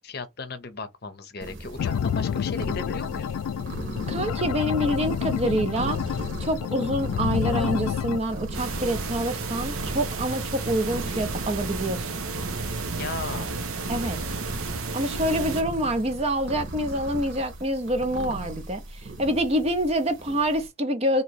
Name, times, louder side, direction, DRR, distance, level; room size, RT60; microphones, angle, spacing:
voice 1, 0.0-3.4 13.0-13.6, left 3 dB, 45° left, 0.7 m, -36 dB
sound 1, 1.4-20.7, right 1 dB, 60° right, 1.2 m, -38 dB
sound 2, 1.8-8.2, left 8 dB, 90° left, 0.3 m, -28 dB
voice 2, 4.1-6.0 6.4-12.2 13.9-14.2 14.9-18.8 19.2-21.2, right 1 dB, 30° right, 0.5 m, -26 dB
sound 3, 8.5-15.6, right 3 dB, 85° right, 0.9 m, -32 dB
3.0 x 2.9 x 4.5 m
head